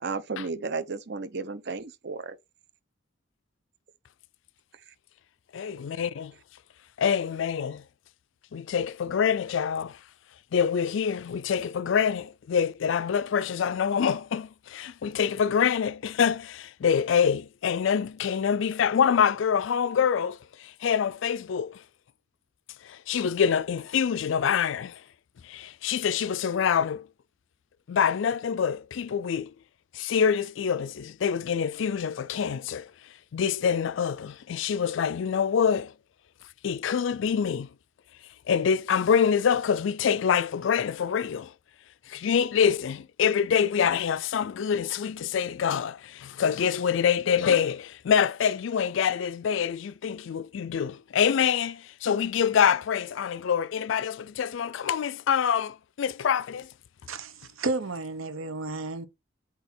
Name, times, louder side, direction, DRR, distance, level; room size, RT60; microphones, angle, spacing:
voice 1, 0.0-2.4 4.9-5.0, right 4 dB, 55° right, 0.7 m, -33 dB
voice 2, 5.5-6.3 7.0-7.8 8.5-10.0 10.5-21.8 22.8-25.0 25.4-27.1 27.9-29.5 29.9-35.9 36.6-37.7 38.5-41.5 42.1-56.7, left 7 dB, 65° left, 0.3 m, -26 dB
voice 3, 57.1-59.1, right 3 dB, 80° right, 1.0 m, -32 dB
7.8 x 2.8 x 4.3 m
head